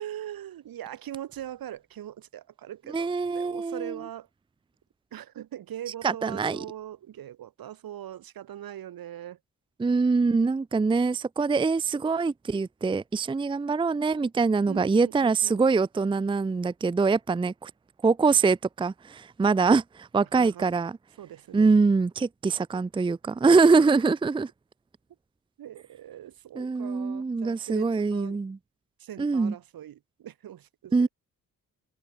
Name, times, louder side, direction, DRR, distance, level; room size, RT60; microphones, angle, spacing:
voice 1, 0.0-4.3 5.1-9.4 14.7-15.6 20.3-20.7 21.2-21.7 23.8-23.9 25.6-28.4 29.0-31.1, right 11 dB, 80° right, 6.7 m, -41 dB
voice 2, 2.9-3.9 6.0-6.6 9.8-17.7 18.0-20.9 21.5-24.5 26.6-28.6 29.2-29.5 30.9-31.1, right 4 dB, 15° right, 0.5 m, -24 dB
open air
cardioid pair, 100°, 35 cm